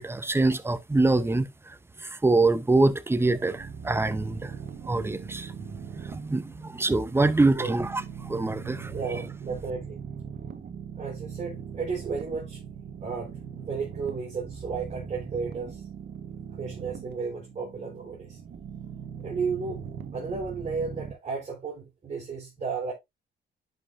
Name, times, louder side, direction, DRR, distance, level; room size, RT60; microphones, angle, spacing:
voice 1, 0.0-1.8 2.0-4.5 4.9-5.5 5.9-8.9, right 2 dB, 10° right, 0.8 m, -25 dB
sound 1, 3.2-21.1, right 7 dB, 55° right, 1.3 m, -40 dB
voice 2, 7.4-7.7 8.9-10.0 11.0-12.6 13.0-15.8 16.6-18.4 19.2-19.8 20.1-22.9, right 5 dB, 35° right, 4.6 m, -33 dB
11.0 x 5.6 x 2.6 m
cardioid pair, 90°, 20 cm